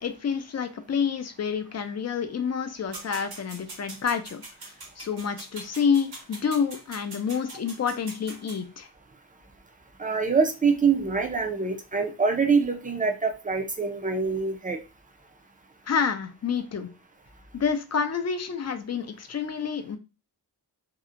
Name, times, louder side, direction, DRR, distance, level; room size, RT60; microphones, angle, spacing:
voice 1, 0.0-4.4 5.0-8.9 15.9-16.9 17.5-20.0, left 6 dB, 40° left, 9 dB, 0.4 m, -28 dB
sound 1, 2.9-8.6, right 2 dB, 65° right, 1.0 m, -43 dB
voice 2, 10.0-14.8, right 5 dB, 20° right, 5 dB, 0.5 m, -25 dB
2.7 x 2.0 x 2.5 m, 0.28 s
wide cardioid pair, 90°, 40 cm